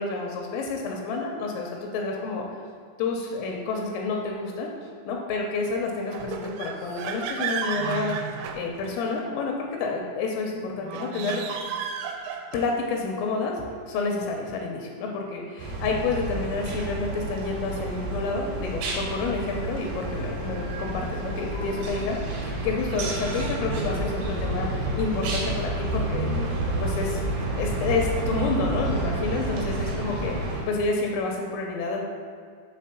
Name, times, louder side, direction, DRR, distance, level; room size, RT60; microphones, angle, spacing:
voice 1, 0.0-2.6 3.0-4.7 5.0-8.1 8.5-11.4 12.5-27.2 27.6-30.4 30.7-32.1, left 3 dB, 85° left, 1 dB, 3.1 m, -29 dB
sound 1, 6.1-9.2 10.8-12.8, right 7 dB, 85° right, 3.3 m, -33 dB
sound 2, 15.6-30.6, right 1 dB, 70° right, 2.7 m, -29 dB
7.5 x 3.5 x 5.7 m, 2.2 s
omnidirectional pair, 6.0 m